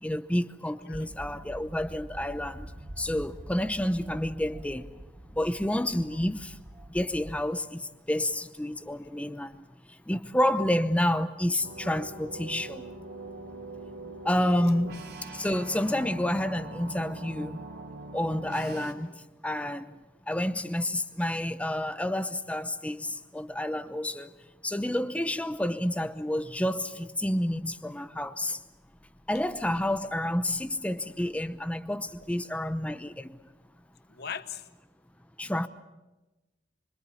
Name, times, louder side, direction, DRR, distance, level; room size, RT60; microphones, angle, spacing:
voice 1, 0.0-4.9 5.3-6.6 6.9-12.9 14.2-15.0 15.3-17.6 18.1-20.0 20.3-24.3 24.6-28.6 29.3-33.4 35.4-35.7, left 1 dB, 5° left, 0.8 m, -29 dB
sound 1, 0.9-7.4, right 1 dB, 30° right, 1.1 m, -45 dB
sound 2, 11.6-18.9, right 2 dB, 65° right, 3.3 m, -42 dB
voice 2, 14.3-14.9 34.1-34.7, left 7 dB, 60° left, 1.0 m, -41 dB
25.5 x 25.0 x 7.1 m
head